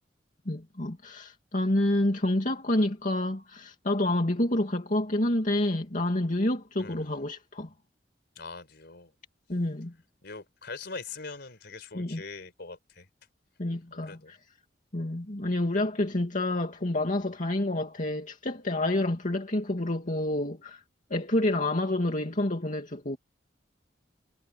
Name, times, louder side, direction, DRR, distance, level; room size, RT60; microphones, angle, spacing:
voice 1, 0.5-7.7 9.5-9.9 11.9-12.2 13.6-14.4 14.9-20.8 21.1-23.2, left 1 dB, 45° left, 2.4 m, -28 dB
voice 2, 6.8-7.2 8.4-9.1 10.2-13.1 13.9-14.3, left 4 dB, 65° left, 4.3 m, -42 dB
head